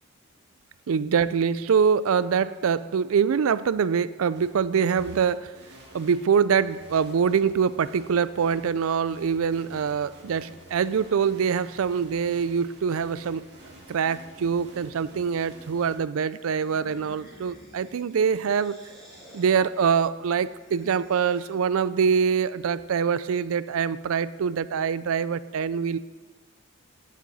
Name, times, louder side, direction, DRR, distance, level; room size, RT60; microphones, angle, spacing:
voice 1, 0.9-5.6 5.9-13.5 13.9-18.8 19.3-26.0, right 6 dB, 70° right, 16 dB, 0.4 m, -24 dB
sound 1, 4.3-4.5 4.9-16.0, right 1 dB, 50° right, 2.3 m, -50 dB
sound 2, 16.3-21.8, equal, ahead, 3.1 m, -51 dB
15.5 x 7.5 x 4.1 m, 1.3 s
head